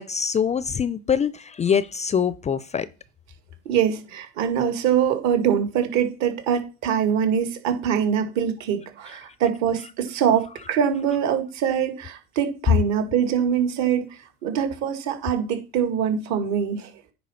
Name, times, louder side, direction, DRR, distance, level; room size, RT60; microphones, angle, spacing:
voice 1, 0.0-2.9, left 7 dB, 20° left, 0.5 m, -24 dB
voice 2, 3.7-14.0 14.4-16.9, right 8 dB, 60° right, 2.3 m, -23 dB
9.4 x 4.1 x 5.8 m
hypercardioid pair, 90°, 32 cm